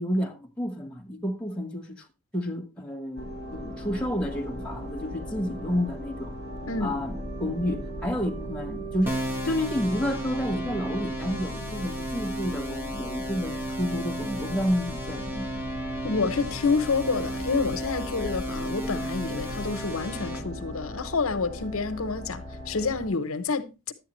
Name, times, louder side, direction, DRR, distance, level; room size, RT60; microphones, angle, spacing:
voice 1, 0.0-2.1 2.3-6.3 6.8-15.5, equal, 5° left, 1.3 m, -30 dB
sound 1, 3.2-23.1, equal, 50° right, 2.3 m, -38 dB
voice 2, 6.7-7.0 16.0-23.9, left 4 dB, 80° left, 0.9 m, -28 dB
sound 2, 9.1-20.4, equal, 10° right, 1.1 m, -34 dB
11.0 x 8.6 x 3.1 m
head